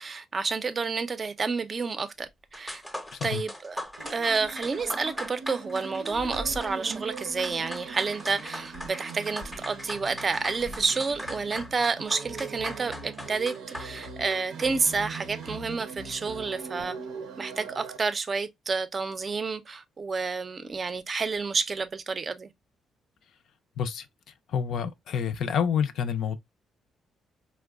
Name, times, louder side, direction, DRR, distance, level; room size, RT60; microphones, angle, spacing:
voice 1, 0.0-2.8 3.2-3.8 4.1-17.0 17.4-22.5, right 4 dB, 35° right, 0.4 m, -30 dB
sound 1, 2.2-2.3 2.5-15.5, equal, 5° left, 0.6 m, -40 dB
voice 2, 3.1-3.4 23.8-24.1 24.5-26.4, left 7 dB, 70° left, 0.4 m, -28 dB
sound 2, 4.0-18.0, right 5 dB, 90° right, 0.6 m, -42 dB
sound 3, 6.1-16.8, left 3 dB, 90° left, 0.8 m, -47 dB
4.5 x 2.1 x 2.3 m
cardioid pair, 90°, 0 cm